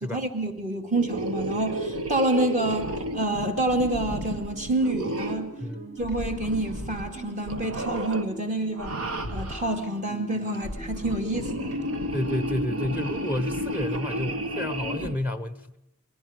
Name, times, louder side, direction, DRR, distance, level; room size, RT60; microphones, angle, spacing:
voice 1, 0.0-5.6 6.0-9.0 9.3-11.8, right 1 dB, 35° right, 2.3 m, -28 dB
sound 1, 0.9-5.5 6.0-7.2 7.4-8.3 8.7-9.8 10.5-15.2, right 1 dB, 75° right, 1.6 m, -32 dB
sound 2, 3.7-14.5, right 2 dB, 50° right, 2.5 m, -42 dB
voice 2, 12.1-15.8, left 1 dB, 5° right, 0.9 m, -30 dB
30.0 x 22.0 x 5.1 m
head